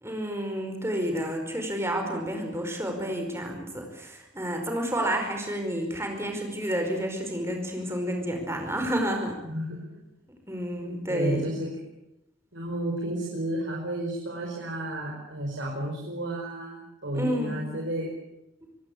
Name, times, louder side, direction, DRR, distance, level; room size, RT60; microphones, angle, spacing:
voice 1, 0.0-9.4 10.5-11.5 17.1-17.7, equal, 15° right, 3 dB, 5.0 m, -30 dB
voice 2, 9.4-9.8 10.8-11.7 12.5-18.1, right 1 dB, 70° right, -2 dB, 5.3 m, -32 dB
25.5 x 18.0 x 8.6 m, 0.88 s
head